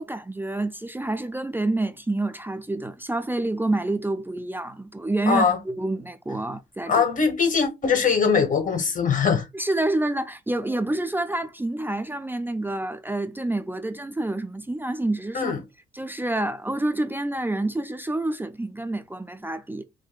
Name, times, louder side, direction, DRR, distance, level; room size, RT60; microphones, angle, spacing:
voice 1, 0.0-7.0 9.5-15.5 15.9-19.8, right 2 dB, 10° right, 0.5 m, -28 dB
voice 2, 5.3-5.6 6.9-9.4 15.3-15.6, left 5 dB, 40° left, 1.5 m, -21 dB
4.5 x 2.6 x 2.3 m
cardioid pair, 90°, 20 cm